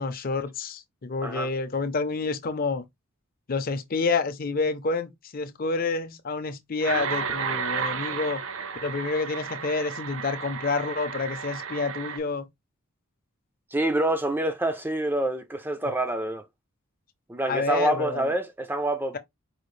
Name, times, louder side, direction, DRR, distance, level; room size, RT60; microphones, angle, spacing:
voice 1, 0.0-2.8 3.5-8.4 8.8-12.5 15.8-15.9 17.5-18.3, left 4 dB, 40° left, 0.5 m, -28 dB
sound 1, 6.8-12.2, right 6 dB, 60° right, 0.6 m, -32 dB
voice 2, 13.7-16.5 17.3-19.2, right 1 dB, 10° right, 0.3 m, -26 dB
4.9 x 2.4 x 3.1 m
head